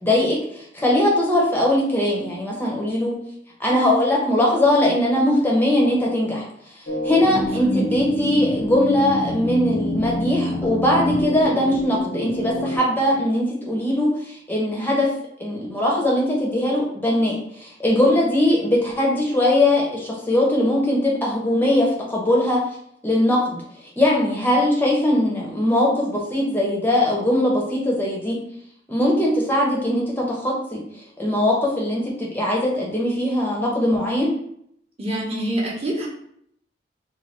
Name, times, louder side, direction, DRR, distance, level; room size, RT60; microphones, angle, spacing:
voice 1, 0.0-3.1 3.6-6.5 7.0-15.1 15.4-22.6 23.0-23.6 24.0-28.4 28.9-30.8 31.2-34.3, left 1 dB, 10° left, -3 dB, 0.5 m, -20 dB
sound 1, 6.9-12.8, left 1 dB, 60° left, 0.5 m, -27 dB
voice 2, 7.3-7.9 35.0-36.1, right 1 dB, 35° right, -3 dB, 0.7 m, -26 dB
3.0 x 2.2 x 3.0 m, 0.70 s
head